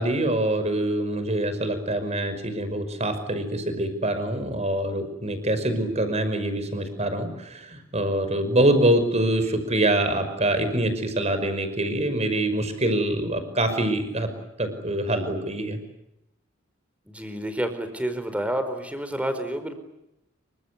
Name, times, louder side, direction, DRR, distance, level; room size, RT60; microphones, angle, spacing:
voice 1, 0.0-14.3 14.6-15.8, right 1 dB, 35° right, 10 dB, 5.5 m, -25 dB
voice 2, 17.1-19.8, right 1 dB, 5° right, 9 dB, 4.6 m, -29 dB
28.5 x 25.0 x 8.3 m, 0.86 s
head